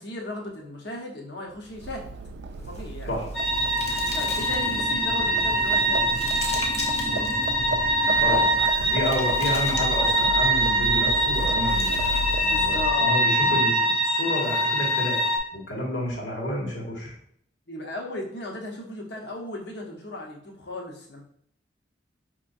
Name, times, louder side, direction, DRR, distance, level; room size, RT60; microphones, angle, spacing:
voice 1, 0.0-2.1 2.6-3.1 4.1-6.2 6.9-7.3 8.1-8.5 12.4-13.2 17.7-21.2, left 1 dB, 60° left, 0 dB, 1.0 m, -36 dB
Livestock farm animals working animals, 1.6-13.2, right 2 dB, 65° right, 0.3 m, -34 dB
sound 1, 2.6-4.9 5.4-7.4 8.3-10.4 11.4-12.9, left 2 dB, 35° left, 0.7 m, -40 dB
sound 2, 3.3-15.4, equal, ahead, 0.8 m, -23 dB
voice 2, 8.8-15.2 15.5-17.1, equal, 85° left, -4 dB, 1.7 m, -30 dB
5.6 x 3.0 x 2.6 m, 0.68 s
head